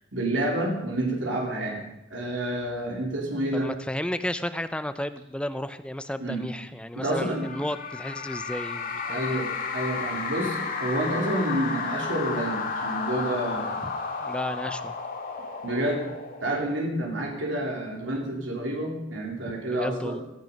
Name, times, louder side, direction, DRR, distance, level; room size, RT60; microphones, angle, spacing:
voice 1, 0.1-1.8 2.1-3.7 6.2-6.4 6.9-7.5 9.1-13.8 15.6-16.1 16.4-20.2, right 1 dB, 70° right, -1 dB, 3.3 m, -29 dB
voice 2, 3.5-9.2 14.2-15.0 19.7-20.2, left 1 dB, 5° left, 11 dB, 0.6 m, -33 dB
sound 1, 7.3-16.9, left 4 dB, 45° left, 2.2 m, -33 dB
16.0 x 13.5 x 5.3 m, 0.94 s
head